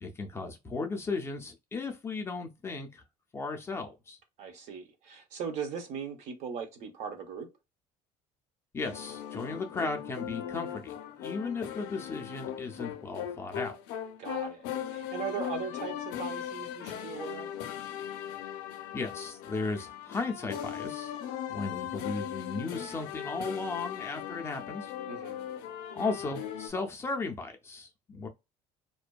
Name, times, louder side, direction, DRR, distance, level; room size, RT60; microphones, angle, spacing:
voice 1, 0.0-3.0 3.3-4.2 8.7-13.8 18.9-21.1 21.5-24.9 25.9-28.3, left 3 dB, 20° left, 0.4 m, -36 dB
voice 2, 4.4-7.5 14.2-17.5 25.1-25.4, right 7 dB, 60° right, 0.7 m, -39 dB
sound 1, 8.8-26.7, left 10 dB, 80° left, 0.4 m, -39 dB
2.5 x 2.2 x 2.2 m
cardioid pair, 135°, 13 cm